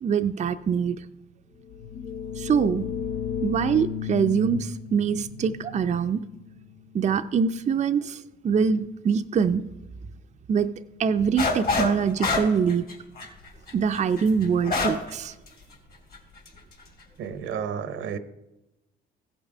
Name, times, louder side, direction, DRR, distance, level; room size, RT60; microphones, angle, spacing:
voice 1, 0.0-1.0 2.4-2.9 3.4-6.2 6.9-9.6 10.5-10.7 11.0-12.8 13.7-15.3, right 6 dB, 35° right, 8 dB, 0.4 m, -24 dB
sound 1, 1.6-7.2, left 8 dB, 85° left, 0.8 m, -34 dB
sound 2, 11.4-11.9 12.2-15.1 15.5-15.6 16.1-16.5, left 3 dB, 50° left, 2.5 m, -26 dB
voice 2, 17.2-18.2, right 7 dB, 80° right, 12 dB, 0.8 m, -31 dB
15.0 x 5.5 x 4.9 m, 0.95 s
cardioid pair, 90°, 20 cm